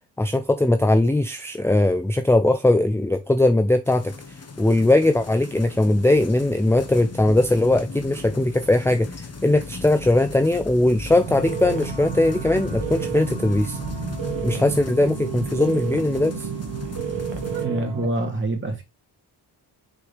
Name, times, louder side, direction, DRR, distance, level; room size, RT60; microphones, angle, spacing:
voice 1, 0.2-4.1 4.6-13.8 14.4-16.5, left 1 dB, 5° left, 0.6 m, -20 dB
sound 1, 3.9-17.7, left 4 dB, 35° left, 1.4 m, -36 dB
sound 2, 11.2-18.1, right 8 dB, 80° right, 1.5 m, -31 dB
voice 2, 17.6-18.8, right 1 dB, 25° right, 3.0 m, -26 dB
6.7 x 4.9 x 3.4 m
cardioid pair, 90°, 42 cm